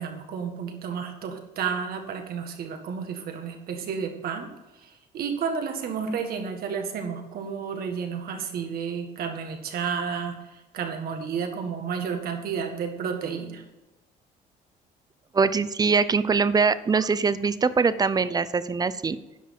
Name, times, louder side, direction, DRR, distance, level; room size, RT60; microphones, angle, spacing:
voice 1, 0.0-4.5 4.8-13.6, right 6 dB, 65° right, 5 dB, 1.8 m, -31 dB
voice 2, 15.3-19.2, right 5 dB, 25° right, 15 dB, 0.5 m, -23 dB
10.5 x 6.0 x 5.9 m, 1.1 s
cardioid pair, 110°, 17 cm